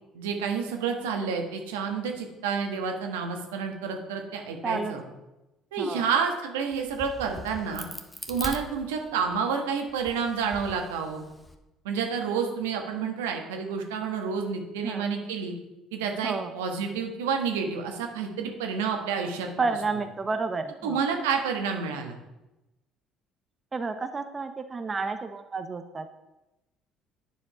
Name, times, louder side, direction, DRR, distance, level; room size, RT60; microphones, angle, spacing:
voice 1, 0.1-5.0 5.7-7.9 8.3-11.2 11.8-15.5 15.9-19.5 20.8-22.2, right 6 dB, 85° right, 3 dB, 1.2 m, -29 dB
voice 2, 4.6-5.0 5.8-6.0 14.8-15.1 16.2-16.5 19.6-21.0 23.7-26.1, right 4 dB, 30° right, 8 dB, 0.7 m, -30 dB
Crack, 6.7-9.4 9.9-11.6, left 1 dB, 10° left, 1.2 m, -41 dB
9.3 x 5.1 x 4.9 m, 0.98 s
hypercardioid pair, 60°, 0 cm